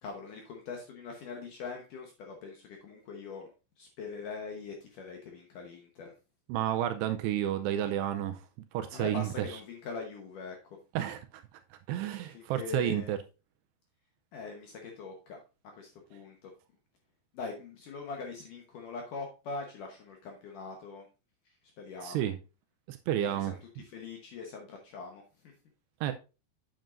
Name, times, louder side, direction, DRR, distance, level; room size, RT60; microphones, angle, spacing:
voice 1, 0.0-3.5 3.8-6.1 8.9-10.8 12.3-13.2 14.3-15.4 15.7-16.5 17.3-21.1 21.5-22.3 23.3-25.5, left 4 dB, 70° left, 2.0 m, -42 dB
voice 2, 6.5-8.4 8.7-9.5 11.0-11.4 11.9-13.2 22.0-22.4 22.9-23.5 26.0-26.1, right 11 dB, 80° right, 2.5 m, -31 dB
9.0 x 7.5 x 2.5 m
omnidirectional pair, 5.1 m